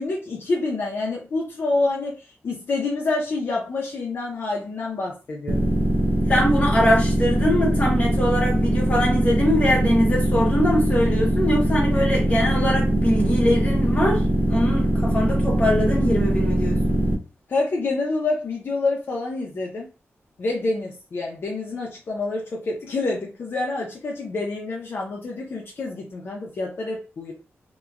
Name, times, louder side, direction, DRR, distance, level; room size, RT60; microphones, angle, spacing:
voice 1, 0.0-5.7 17.5-19.9 20.4-27.3, left 3 dB, 55° left, 0.5 m, -27 dB
sound 1, 5.5-17.1, right 1 dB, 40° right, 0.4 m, -21 dB
voice 2, 6.3-14.2 14.5-17.0, equal, 30° left, 1.0 m, -22 dB
2.9 x 2.1 x 2.4 m
wide cardioid pair, 170°, 5 cm